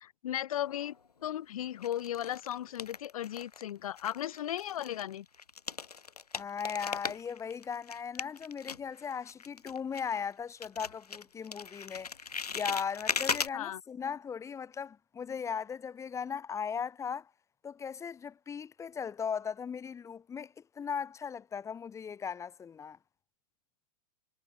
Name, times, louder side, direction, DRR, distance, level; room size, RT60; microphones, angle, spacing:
voice 1, 0.0-1.0 1.2-5.3 13.5-13.8, left 12 dB, 65° left, 1.1 m, -36 dB
sound 1, 0.6-1.2 1.8-3.7 4.0-10.3 10.6-13.5, left 5 dB, 85° left, 1.3 m, -38 dB
voice 2, 6.4-12.1 12.5-17.3 17.6-23.0, left 7 dB, 15° left, 0.6 m, -38 dB
figure-of-eight pair, 95°, 19 cm